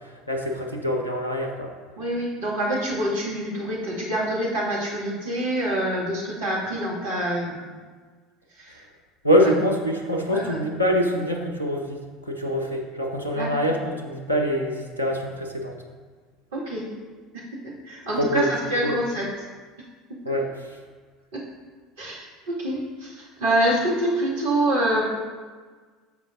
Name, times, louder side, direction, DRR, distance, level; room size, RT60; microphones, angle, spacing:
voice 1, 0.3-1.7 9.2-11.8 12.2-15.7 18.2-18.5 18.8-18.9 20.2-20.5, equal, 90° left, 1 dB, 1.0 m, -24 dB
voice 2, 2.0-7.6 8.5-8.8 9.4-9.5 10.3-10.6 13.3-13.7 16.5-16.9 17.3-19.3 21.3-21.4 22.0-25.2, right 1 dB, 70° right, -5 dB, 1.9 m, -26 dB
14.0 x 5.2 x 2.5 m, 1.5 s
figure-of-eight pair, 65°, 0 cm